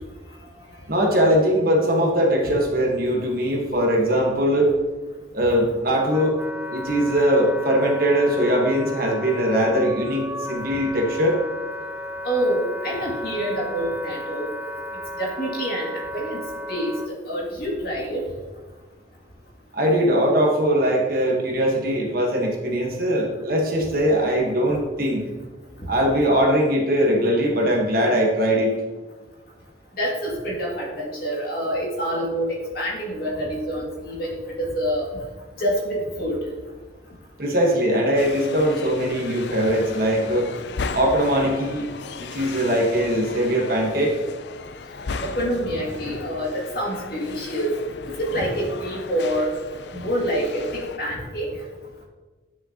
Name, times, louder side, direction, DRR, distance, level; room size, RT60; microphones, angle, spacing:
voice 1, 0.9-4.7 5.3-6.4 6.7-11.4 19.7-25.3 25.9-28.7 37.4-40.5 40.9-41.9 42.2-44.2, equal, 50° right, 0 dB, 1.4 m, -21 dB
Wind instrument woodwind instrument, 5.7-17.1, left 1 dB, 10° right, 0.4 m, -34 dB
voice 2, 12.2-14.5 15.2-16.4 16.7-17.0 17.3-18.2 30.0-35.0 35.6-36.4 45.2-46.5 46.7-47.8 48.2-49.5 49.9-51.5, equal, 55° left, -3 dB, 2.4 m, -26 dB
sound 1, 38.2-51.0, left 4 dB, 70° left, 0.5 m, -36 dB
10.0 x 6.5 x 2.9 m, 1.3 s
head